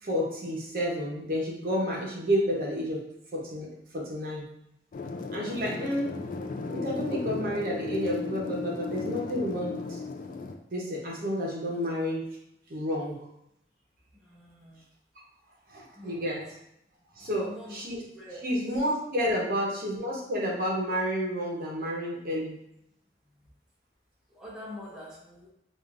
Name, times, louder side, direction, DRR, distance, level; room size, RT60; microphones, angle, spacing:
voice 1, 0.0-3.0 3.3-3.7 3.9-4.4 5.3-6.1 6.7-10.0 10.7-12.2 12.7-13.3 15.7-16.6 17.2-18.0 18.3-22.6, equal, 50° right, -3 dB, 0.9 m, -30 dB
sound 1, 4.9-10.5, left 4 dB, 45° left, 0.3 m, -35 dB
voice 2, 14.3-14.7 16.0-16.1 17.3-17.4 18.2-18.4 24.4-25.5, left 1 dB, 5° right, -7 dB, 0.5 m, -44 dB
5.1 x 2.4 x 2.5 m, 0.78 s
head